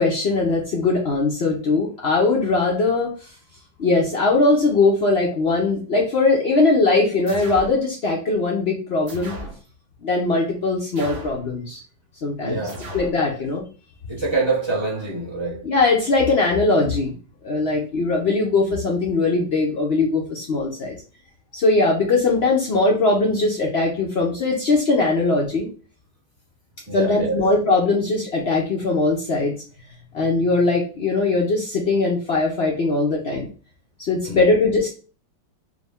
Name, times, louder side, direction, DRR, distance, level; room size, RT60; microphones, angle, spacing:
voice 1, 0.0-3.3 3.8-9.4 10.0-11.8 12.2-12.6 12.9-13.6 15.6-17.1 17.4-21.0 21.5-25.7 26.9-29.5 30.1-33.5 34.0-34.9, left 3 dB, 75° left, 0.5 m, -20 dB
sound 1, 7.3-7.8 9.1-9.6 10.9-11.5 12.7-13.2, equal, 80° right, 2.3 m, -35 dB
voice 2, 12.4-13.4 14.1-15.7 26.9-27.5 34.2-34.5, right 3 dB, 40° right, 0.4 m, -26 dB
5.0 x 2.1 x 3.4 m
omnidirectional pair, 2.0 m